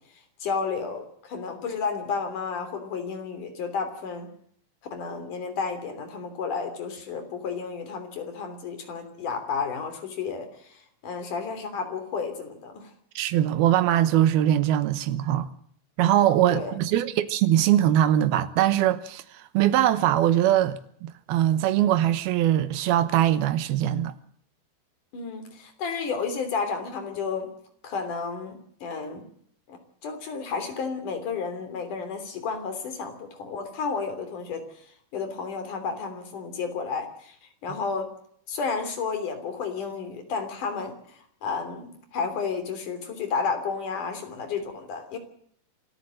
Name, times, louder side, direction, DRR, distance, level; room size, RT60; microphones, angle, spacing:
voice 1, 0.4-4.3 4.9-10.8 11.0-12.9 16.5-16.7 25.1-27.5 27.8-29.3 29.7-34.6 35.1-37.3 37.6-38.1 38.5-41.0 41.4-45.2, left 5 dB, 60° left, 4.6 m, -32 dB
voice 2, 13.2-15.5 16.0-24.1, right 12 dB, 90° right, 3.0 m, -22 dB
27.0 x 14.0 x 7.7 m
omnidirectional pair, 4.2 m